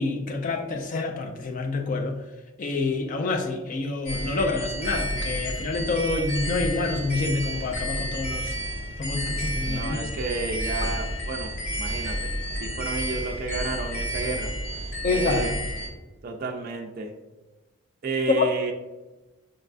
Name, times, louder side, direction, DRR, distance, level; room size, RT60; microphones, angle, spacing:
voice 1, 0.0-2.2 2.6-8.6 9.0-10.0 15.0-15.5 18.4-18.5, left 3 dB, 40° left, 4 dB, 0.3 m, -27 dB
sound 1, 4.0-15.9, equal, 75° left, 1.4 m, -31 dB
voice 2, 9.7-11.5 11.8-14.5 15.1-15.5 16.2-17.1 18.0-18.7, right 3 dB, 45° right, 3 dB, 0.3 m, -31 dB
5.2 x 2.3 x 2.4 m, 1.1 s
head